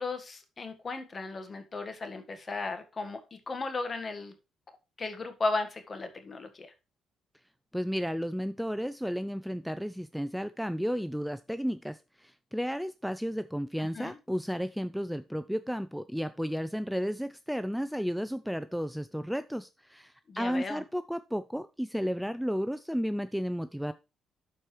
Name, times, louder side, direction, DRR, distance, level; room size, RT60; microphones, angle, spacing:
voice 1, 0.0-4.3 5.0-6.7 13.8-14.2 20.3-20.8, left 3 dB, 35° left, 7 dB, 1.6 m, -35 dB
voice 2, 7.7-23.9, equal, ahead, 12 dB, 0.4 m, -33 dB
12.0 x 4.5 x 3.2 m, 0.28 s
cardioid pair, 90°, 0 cm